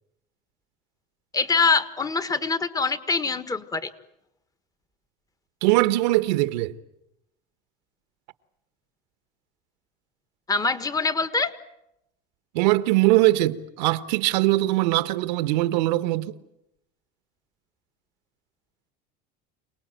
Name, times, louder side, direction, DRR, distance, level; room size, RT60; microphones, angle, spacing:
voice 1, 1.3-3.9 10.5-11.5, left 4 dB, 15° left, 1.5 m, -24 dB
voice 2, 5.6-6.7 12.5-16.3, right 18 dB, 85° right, 1.3 m, -21 dB
28.0 x 19.5 x 9.2 m
supercardioid pair, 120°, 21 cm